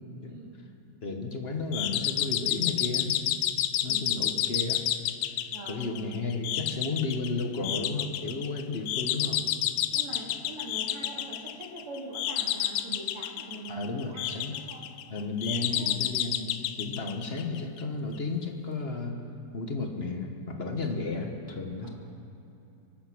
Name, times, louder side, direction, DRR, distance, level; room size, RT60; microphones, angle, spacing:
voice 1, 0.3-0.6 3.8-4.3 5.5-5.9 9.9-14.9 15.5-16.0 21.8-21.9, right 2 dB, 85° right, -2 dB, 3.3 m, -43 dB
voice 2, 1.0-3.2 3.8-4.8 5.4-9.4 13.7-14.6 15.1-19.2 19.5-21.9, left 3 dB, 40° left, 3 dB, 1.0 m, -33 dB
sound 1, 1.7-17.8, left 12 dB, 75° left, 1.3 m, -30 dB
24.5 x 8.4 x 6.1 m, 2.8 s
omnidirectional pair, 2.4 m